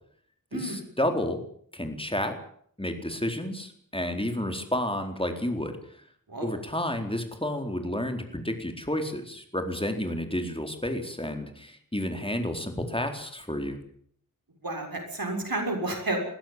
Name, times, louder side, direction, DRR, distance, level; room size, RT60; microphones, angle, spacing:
voice 1, 0.5-1.4 1.7-2.3 2.8-5.8 6.4-13.8, left 1 dB, 15° left, 5 dB, 4.3 m, -31 dB
voice 2, 14.6-16.2, right 2 dB, 90° right, 2 dB, 6.6 m, -31 dB
21.5 x 16.0 x 9.1 m, 0.63 s
wide cardioid pair, 50°, 34 cm